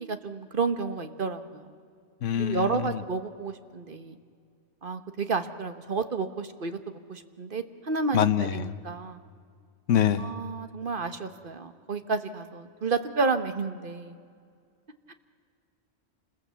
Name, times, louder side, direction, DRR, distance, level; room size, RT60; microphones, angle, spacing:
voice 1, 0.1-1.7 2.3-4.2 4.8-8.2 8.5-9.2 10.2-14.1 15.1-15.2, right 4 dB, 45° right, 1.3 m, -31 dB
voice 2, 2.2-3.0 8.1-8.7 9.9-10.3, left 9 dB, 85° left, 1.2 m, -25 dB
27.5 x 20.5 x 8.2 m
omnidirectional pair, 1.2 m